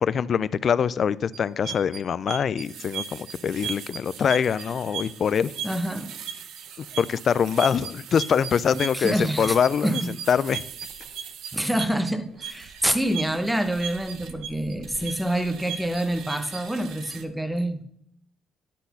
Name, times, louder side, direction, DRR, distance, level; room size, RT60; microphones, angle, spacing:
voice 1, 0.0-5.5 6.8-10.0 10.3-10.6, left 7 dB, 50° left, 0.3 m, -24 dB
sound 1, 1.3-17.2, right 8 dB, 80° right, 0.7 m, -37 dB
voice 2, 5.6-6.1 8.7-9.6 9.8-10.1 11.5-17.8, right 1 dB, 5° right, 0.9 m, -26 dB
10.0 x 4.0 x 5.6 m
cardioid pair, 100°, 0 cm